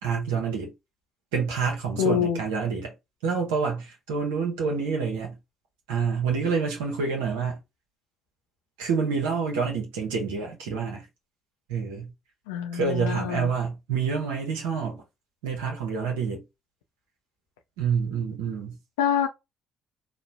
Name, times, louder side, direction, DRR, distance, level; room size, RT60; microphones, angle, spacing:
voice 1, 0.0-0.7 1.3-2.9 3.2-5.3 5.9-7.6 8.8-11.1 11.7-12.1 12.7-15.0 15.4-16.4 17.8-18.8, right 5 dB, 80° right, 0.7 m, -27 dB
voice 2, 2.0-2.4 12.5-13.5 19.0-19.3, left 8 dB, 85° left, 0.4 m, -25 dB
3.0 x 2.1 x 2.5 m
hypercardioid pair, 55°, 0 cm